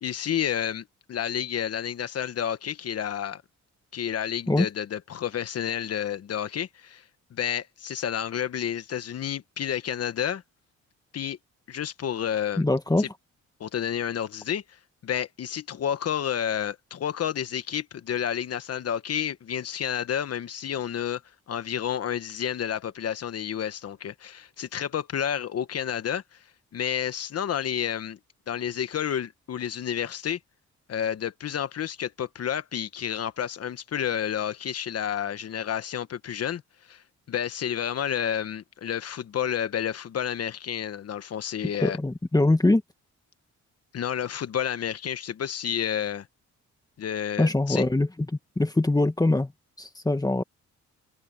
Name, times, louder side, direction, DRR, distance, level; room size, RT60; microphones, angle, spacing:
voice 1, 0.0-3.4 3.9-7.0 7.3-10.4 11.1-11.4 11.7-12.6 13.0-13.1 13.6-21.2 21.5-26.4 26.7-28.2 28.5-30.4 30.9-36.6 36.9-42.0 43.9-46.3 47.0-47.8, left 9 dB, 55° left, 1.2 m, -30 dB
voice 2, 12.6-13.1 41.8-42.8 47.4-48.1 48.6-49.5 49.8-50.4, left 2 dB, 10° left, 1.9 m, -22 dB
open air
cardioid pair, 90°, 30 cm